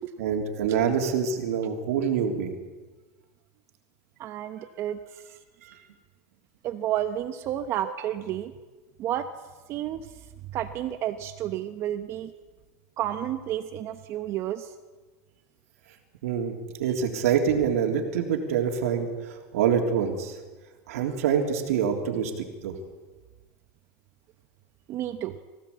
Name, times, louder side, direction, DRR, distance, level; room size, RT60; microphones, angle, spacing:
voice 1, 0.2-2.5 5.6-5.8 16.2-20.4 20.9-22.8, right 7 dB, 80° right, 3 dB, 3.5 m, -26 dB
voice 2, 4.2-5.0 6.6-8.5 9.0-9.3 9.7-10.0 10.5-12.3 13.0-14.7 24.9-25.3, right 11 dB, 35° right, 9 dB, 1.0 m, -31 dB
24.0 x 17.0 x 8.6 m, 1.3 s
supercardioid pair, 160°, 8 cm